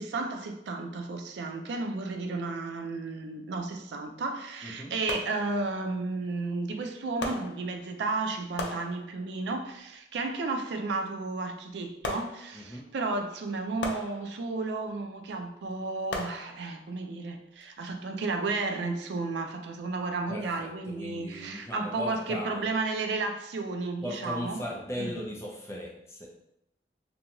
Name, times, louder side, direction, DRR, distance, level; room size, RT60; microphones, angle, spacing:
voice 1, 0.0-24.6 25.0-25.1, right 3 dB, 85° right, 0.4 m, -33 dB
sound 1, 3.6-3.7 5.1-5.9 7.2-8.1 8.6-9.5 12.0-12.9 13.8-14.8 16.1-17.0 17.6-17.7, left 2 dB, 85° left, 0.4 m, -39 dB
voice 2, 4.6-4.9 12.5-12.9 20.3-22.7 24.0-26.3, left 1 dB, 15° left, 0.4 m, -38 dB
2.6 x 2.3 x 2.9 m
head